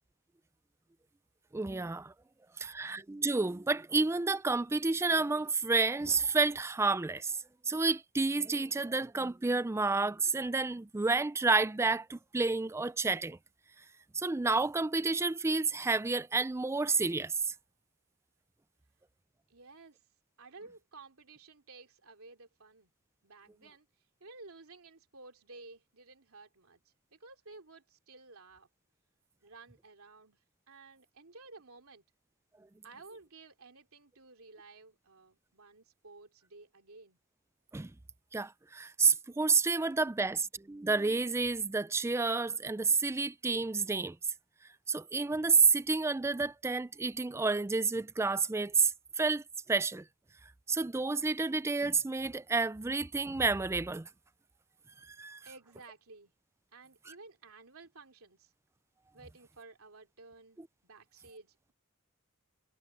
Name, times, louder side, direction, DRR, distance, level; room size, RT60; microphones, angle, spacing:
voice 1, 1.5-2.1 2.6-7.4 7.7-13.4 14.1-17.5 37.7-37.9 38.3-44.2 44.9-49.4 49.7-50.0 50.7-54.1 55.1-55.4 57.1-57.2, right 4 dB, 10° right, 0.4 m, -30 dB
voice 2, 19.5-20.0 20.4-22.9 23.2-23.9 24.2-28.7 29.4-30.4 30.7-32.0 32.8-37.2 55.4-56.3 56.7-58.5 59.1-61.7, right 3 dB, 70° right, 3.0 m, -54 dB
head